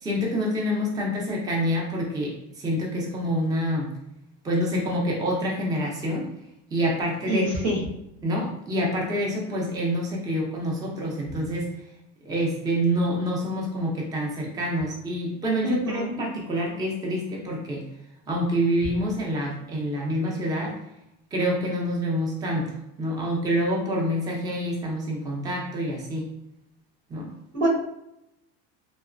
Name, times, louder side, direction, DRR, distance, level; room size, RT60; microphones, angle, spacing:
voice 1, 0.0-3.9 4.4-6.3 6.7-7.5 8.2-11.7 12.2-17.8 18.3-20.8 21.3-26.3 27.1-27.3, equal, 10° right, -2 dB, 0.5 m, -27 dB
voice 2, 7.3-7.8 15.6-16.1 27.5-27.7, right 1 dB, 85° right, -3 dB, 1.3 m, -25 dB
3.0 x 2.0 x 2.4 m, 0.83 s
supercardioid pair, 120°, 35 cm